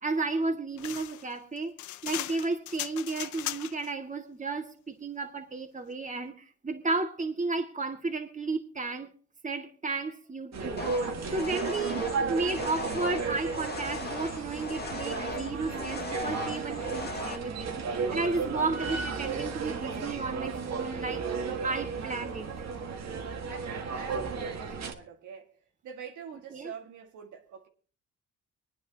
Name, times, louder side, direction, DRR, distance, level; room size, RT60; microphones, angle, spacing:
voice 1, 0.0-1.7 2.0-9.1 9.4-21.3 21.6-22.5 26.5-26.7, right 3 dB, 25° right, 2.0 m, -33 dB
sound 1, 0.8-3.9, left 14 dB, 75° left, 0.6 m, -38 dB
sound 2, 10.5-24.9, right 5 dB, 60° right, 1.7 m, -34 dB
sound 3, 10.8-17.4, left 3 dB, 35° left, 1.6 m, -39 dB
voice 2, 23.5-27.7, right 6 dB, 75° right, 1.8 m, -45 dB
25.0 x 9.5 x 2.8 m
cardioid pair, 90°, 30 cm